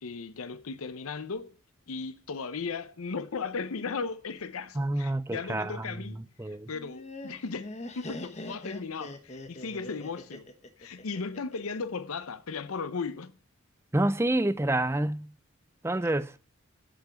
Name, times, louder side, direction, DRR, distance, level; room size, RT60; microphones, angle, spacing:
voice 1, 0.0-1.6 1.9-10.5 10.8-13.3 16.0-16.1, left 4 dB, 85° left, 0.7 m, -36 dB
voice 2, 4.8-5.9 6.4-6.7 13.9-15.3 15.8-16.3, right 1 dB, 10° right, 0.4 m, -28 dB
Laughter, 6.7-11.8, left 2 dB, 30° left, 1.1 m, -42 dB
10.0 x 6.0 x 8.7 m
head